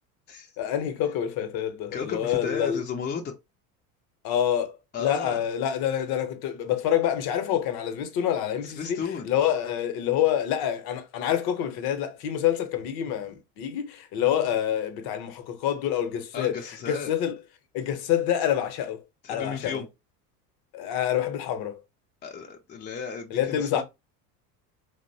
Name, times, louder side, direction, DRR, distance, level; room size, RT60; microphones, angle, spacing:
voice 1, 0.6-2.8 4.2-9.0 9.2-17.4 17.7-19.0 19.3-19.9 20.7-21.8 23.3-23.8, left 10 dB, 50° left, 0.8 m, -27 dB
voice 2, 1.9-3.3 4.9-5.4 8.6-9.3 16.3-17.1 19.2-19.9 22.2-23.8, left 6 dB, 20° left, 0.5 m, -34 dB
2.8 x 2.1 x 2.6 m
hypercardioid pair, 85°, 48 cm